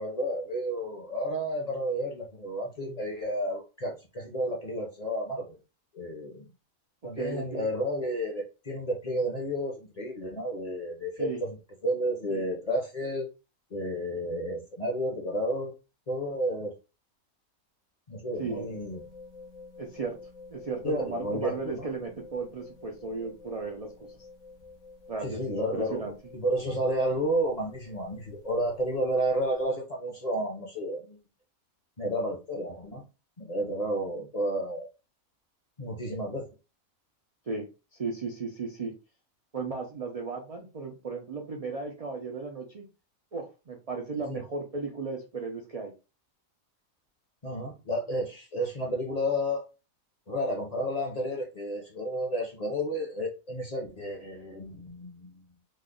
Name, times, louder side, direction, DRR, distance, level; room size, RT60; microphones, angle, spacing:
voice 1, 0.0-5.6 5.9-6.5 7.0-11.5 11.8-13.3 13.7-15.7 16.1-16.7 18.1-19.0 20.8-21.9 25.2-26.0 26.3-31.2 32.0-33.0 33.4-34.9 35.8-36.5 44.3-44.4 47.4-49.6 50.3-55.4, equal, 35° left, 0.6 m, -31 dB
voice 2, 7.1-7.7 11.2-11.4 12.3-12.5 18.4-18.7 19.8-20.2 20.5-24.3 25.1-26.1 37.5-37.7 37.9-38.9 39.5-42.9 43.3-45.9, right 4 dB, 70° right, 0.3 m, -35 dB
sound 1, 18.3-29.6, left 3 dB, 70° left, 0.9 m, -50 dB
3.2 x 2.1 x 3.7 m
omnidirectional pair, 1.5 m